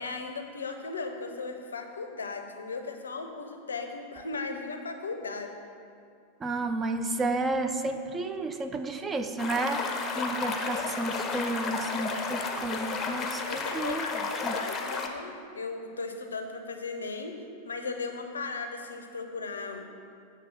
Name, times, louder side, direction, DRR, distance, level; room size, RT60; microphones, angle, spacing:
voice 1, 0.0-5.5 13.4-17.4 17.7-19.9, left 4 dB, 70° left, 5 dB, 0.5 m, -37 dB
voice 2, 6.4-9.8 10.1-14.5, right 2 dB, 20° right, 7 dB, 0.4 m, -32 dB
sound 1, 9.4-15.1, left 4 dB, 25° left, 0.6 m, -32 dB
7.4 x 3.3 x 5.9 m, 2.4 s
figure-of-eight pair, 90°, 0 cm